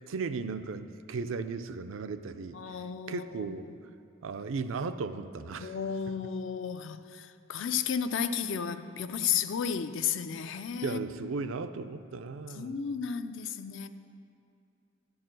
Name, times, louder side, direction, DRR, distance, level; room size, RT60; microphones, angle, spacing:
voice 1, 0.1-3.6 4.2-5.8 10.8-12.8, right 4 dB, 80° right, 10 dB, 0.5 m, -36 dB
voice 2, 2.5-3.5 5.6-11.1 12.6-13.9, left 7 dB, 65° left, 11 dB, 0.4 m, -33 dB
11.5 x 4.8 x 7.5 m, 2.6 s
head